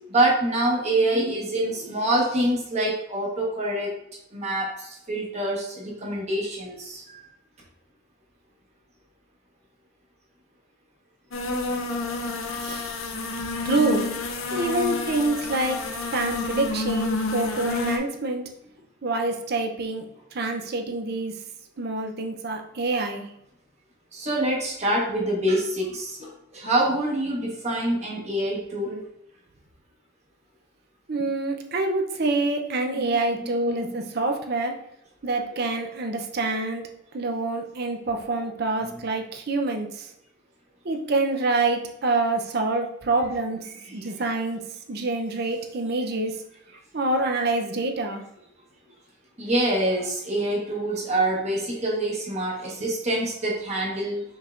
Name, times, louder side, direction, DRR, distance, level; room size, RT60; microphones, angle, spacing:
voice 1, 0.1-3.9 4.3-7.2 24.1-29.0 33.0-33.2 33.5-33.9 38.8-39.0 43.9-44.2 49.4-54.2, right 1 dB, 35° right, -3 dB, 1.2 m, -26 dB
sound 1, 11.3-18.0, left 2 dB, 90° left, 0.6 m, -29 dB
voice 2, 12.6-12.9 13.6-14.1 14.5-15.8 16.1-18.4 19.0-20.0 20.3-21.3 21.8-23.2 31.1-34.8 35.2-36.9 37.1-40.1 40.8-43.6 43.9-44.6 44.9-46.3 46.9-48.2, right 2 dB, 50° right, 4 dB, 0.6 m, -26 dB
5.4 x 3.5 x 2.5 m, 0.80 s
head